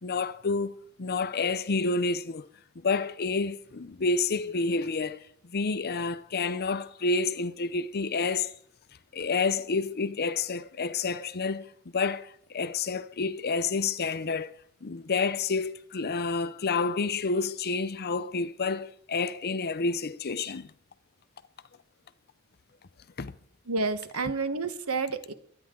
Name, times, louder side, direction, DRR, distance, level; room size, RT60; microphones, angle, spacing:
voice 1, 0.0-2.5 2.8-8.6 9.1-14.5 14.8-20.7 23.2-23.3, left 4 dB, 45° left, 0.6 m, -29 dB
voice 2, 23.7-25.3, right 4 dB, 80° right, 1.3 m, -30 dB
23.5 x 9.7 x 3.8 m
head